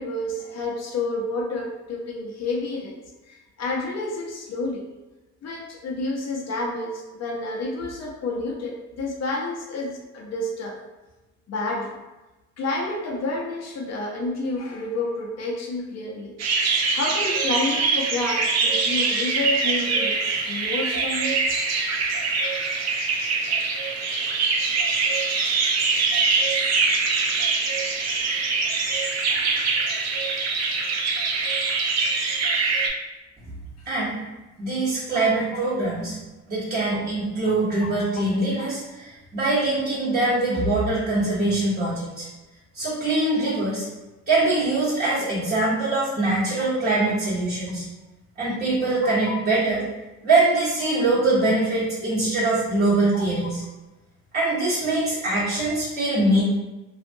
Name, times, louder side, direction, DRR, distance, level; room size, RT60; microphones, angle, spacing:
voice 1, 0.0-3.0 3.3-4.8 5.4-10.8 11.5-12.0 12.6-16.3 16.9-21.4 29.3-29.7 35.1-35.3 37.5-38.2 41.8-41.9 47.0-47.1 49.0-49.4 53.1-53.3, left 2 dB, 60° left, -1 dB, 0.7 m, -30 dB
sound 1, 16.4-32.9, right 4 dB, 60° right, 0.5 m, -23 dB
voice 2, 33.8-34.2 34.6-36.1 36.5-42.2 42.7-43.9 44.3-47.8 48.4-49.8 50.2-53.6 54.3-56.4, right 2 dB, 25° right, -13 dB, 1.3 m, -23 dB
2.7 x 2.4 x 2.6 m, 1.1 s
cardioid pair, 90°, 30 cm